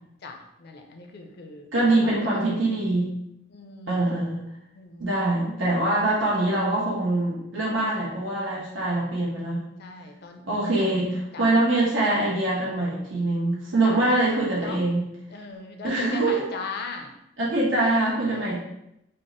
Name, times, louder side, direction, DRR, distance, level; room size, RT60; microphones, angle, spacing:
voice 1, 0.2-2.7 3.5-4.1 4.7-5.1 9.8-10.4 10.8-10.9 11.3-11.5 13.8-14.0 14.5-14.8 15.3-17.1 18.3-18.6, left 4 dB, 60° left, 4 dB, 0.5 m, -39 dB
voice 2, 1.7-3.1 3.9-4.4 5.0-9.7 10.4-15.0 15.8-16.5 17.4-18.6, right 2 dB, 80° right, -6 dB, 1.0 m, -24 dB
3.5 x 2.1 x 3.8 m, 0.82 s
head